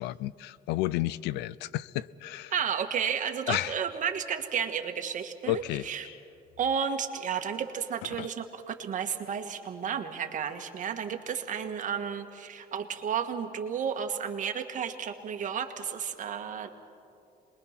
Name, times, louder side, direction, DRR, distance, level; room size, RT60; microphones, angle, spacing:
voice 1, 0.0-2.5 3.5-3.7 5.5-6.2 8.2-8.3, left 16 dB, 90° left, 20 dB, 0.5 m, -32 dB
voice 2, 2.5-6.1 6.6-16.7, right 7 dB, 50° right, 6 dB, 1.7 m, -32 dB
27.0 x 21.5 x 5.9 m, 2.6 s
cardioid pair, 110°, 17 cm